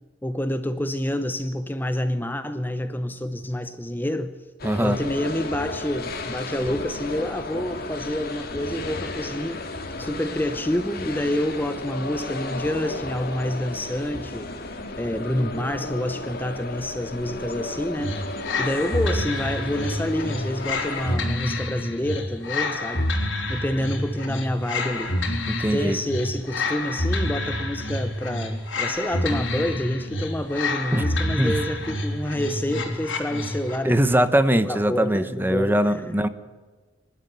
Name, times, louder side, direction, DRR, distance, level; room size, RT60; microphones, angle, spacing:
voice 1, 0.2-4.3 4.8-9.6 10.0-18.3 18.6-23.1 23.5-25.2 25.6-36.1, left 1 dB, 10° left, 0.7 m, -28 dB
sound 1, 4.6-21.2, left 2 dB, 55° left, 2.4 m, -34 dB
voice 2, 4.6-5.0 25.5-26.0 30.9-31.0 31.4-31.5 33.8-36.3, right 1 dB, 10° right, 1.0 m, -21 dB
sound 2, 18.0-33.9, left 2 dB, 80° left, 3.8 m, -28 dB
25.0 x 12.0 x 9.1 m
head